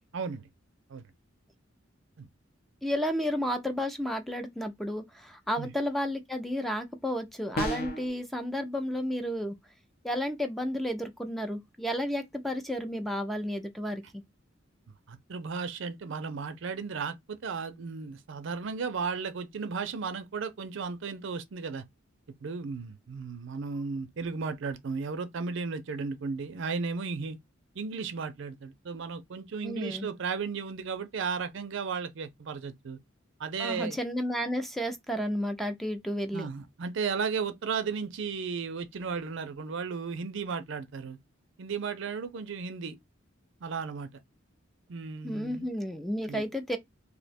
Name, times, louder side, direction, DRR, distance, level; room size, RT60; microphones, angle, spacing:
voice 1, 0.1-0.4 0.9-1.0 2.2-2.3 5.6-5.7 15.1-21.8 22.4-27.4 27.8-33.0 33.4-34.0 36.3-41.2 41.6-43.0 43.6-44.1 44.9-45.7 46.2-46.4, right 5 dB, 65° right, 0.5 m, -34 dB
voice 2, 2.8-9.5 10.0-14.0 29.6-30.1 33.6-36.5 45.2-46.8, equal, ahead, 0.4 m, -32 dB
sound 1, 7.6-8.1, equal, 50° left, 0.8 m, -31 dB
2.7 x 2.2 x 4.1 m
head